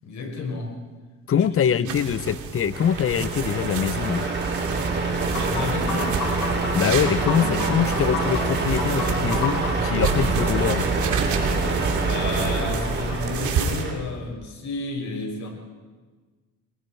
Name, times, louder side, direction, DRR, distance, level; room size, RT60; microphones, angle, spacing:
voice 1, 0.0-0.8 1.3-1.5 1.7-2.2 5.3-6.2 7.3-7.6 11.9-15.5, left 3 dB, 70° left, 1 dB, 6.1 m, -32 dB
voice 2, 1.3-4.3 6.7-10.9, left 8 dB, 45° left, 16 dB, 0.8 m, -24 dB
sound 1, 1.9-13.8, right 7 dB, 75° right, 2.7 m, -31 dB
Truck, 2.7-13.9, right 3 dB, 35° right, 4.3 m, -26 dB
sound 2, 5.3-10.5, left 5 dB, 90° left, 6.6 m, -31 dB
29.5 x 20.5 x 4.6 m, 1.4 s
cardioid pair, 90°, 30 cm